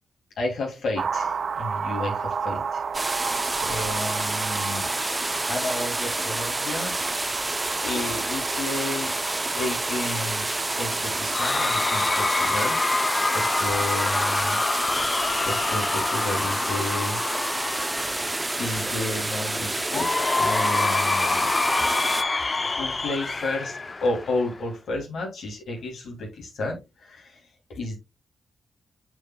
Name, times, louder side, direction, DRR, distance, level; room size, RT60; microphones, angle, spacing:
voice 1, 0.4-3.3 3.6-4.9 5.5-7.0 7.8-9.1 9.5-13.0 13.3-14.6 14.9-17.2 18.6-21.5 21.8-21.9 22.6-28.0, left 2 dB, 75° left, 0 dB, 2.9 m, -32 dB
sound 1, 0.9-12.7, right 6 dB, 60° right, 0.5 m, -33 dB
sound 2, 2.9-22.2, right 2 dB, 20° right, 0.7 m, -29 dB
Cheering / Crowd, 11.3-18.6 19.9-24.6, left 3 dB, 40° left, 0.6 m, -26 dB
8.7 x 5.0 x 2.3 m, 0.24 s
cardioid pair, 60°, 0 cm